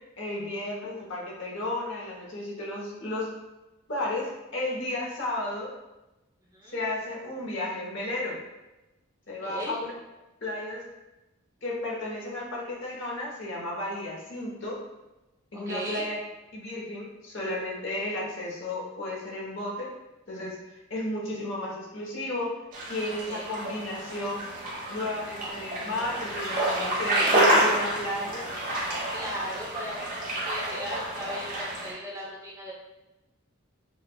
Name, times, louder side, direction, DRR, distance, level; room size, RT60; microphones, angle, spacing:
voice 1, 0.2-3.3 3.9-5.7 6.7-8.4 9.3-9.9 10.4-10.8 11.6-14.8 15.5-16.1 16.5-19.9 20.3-22.6 22.9-24.4 24.9-28.5, left 1 dB, 60° left, -3 dB, 1.0 m, -33 dB
voice 2, 9.3-9.8 15.7-16.1 23.3-23.5 29.1-32.7, equal, 15° right, -5 dB, 0.7 m, -37 dB
sound 1, 22.7-31.9, right 1 dB, 40° right, 1.2 m, -28 dB
6.2 x 2.4 x 2.3 m, 1.0 s
head